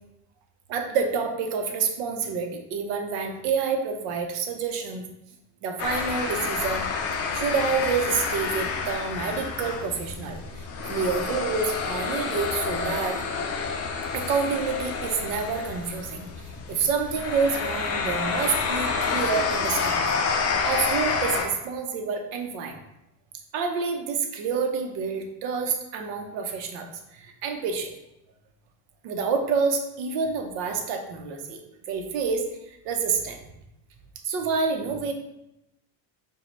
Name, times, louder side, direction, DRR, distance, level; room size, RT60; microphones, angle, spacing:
voice 1, 0.7-5.0 5.6-6.9 7.3-13.2 14.1-16.3 16.7-20.2 20.6-22.8 23.5-27.9 29.0-33.4 34.2-35.1, right 5 dB, 90° right, 4 dB, 0.7 m, -28 dB
sound 1, 5.8-21.5, left 5 dB, 35° left, 0.4 m, -29 dB
4.9 x 2.3 x 3.1 m, 0.86 s
cardioid pair, 135°, 44 cm